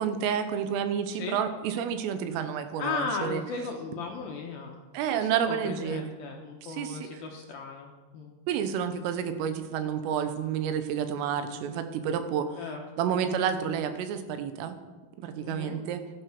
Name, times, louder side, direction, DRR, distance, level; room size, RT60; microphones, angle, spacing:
voice 1, 0.0-3.4 4.9-6.1 6.7-7.1 8.5-12.5 13.0-14.8 15.2-16.0, right 8 dB, 90° right, 9 dB, 3.8 m, -30 dB
voice 2, 2.8-8.3 12.6-13.2 15.4-15.8, left 4 dB, 70° left, 1 dB, 2.5 m, -36 dB
16.5 x 12.0 x 6.1 m, 1.3 s
omnidirectional pair, 5.7 m